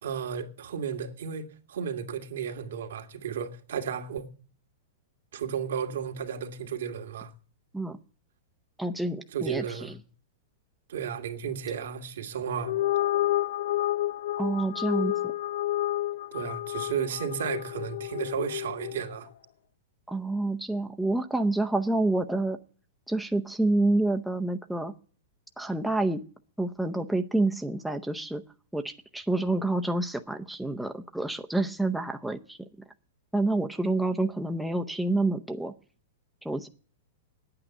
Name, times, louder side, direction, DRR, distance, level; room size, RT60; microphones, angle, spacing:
voice 1, 0.0-4.2 5.3-7.3 9.3-9.9 10.9-12.7 16.3-19.3, right 7 dB, 80° right, 2.2 m, -33 dB
voice 2, 8.8-10.0 14.4-15.3 20.1-22.6 23.1-24.9 25.6-26.2 26.6-28.4 28.7-32.6 33.3-35.7 36.4-36.7, right 2 dB, ahead, 0.7 m, -28 dB
sound 1, 12.6-19.1, left 14 dB, 75° left, 0.6 m, -30 dB
9.6 x 8.9 x 9.1 m
hypercardioid pair, 155°, 0 cm